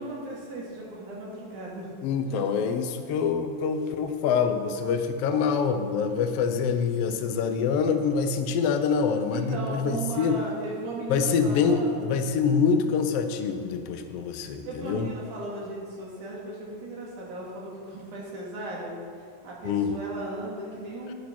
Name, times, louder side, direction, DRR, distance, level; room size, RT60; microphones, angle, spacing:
voice 1, 0.0-1.9 2.3-2.4 9.3-12.1 14.7-18.9 19.4-21.1, right 2 dB, 80° right, -4 dB, 3.7 m, -36 dB
voice 2, 2.0-10.4 11.1-15.1 19.6-19.9, left 6 dB, 70° left, 7 dB, 1.5 m, -25 dB
10.0 x 8.2 x 6.1 m, 2.2 s
omnidirectional pair, 3.5 m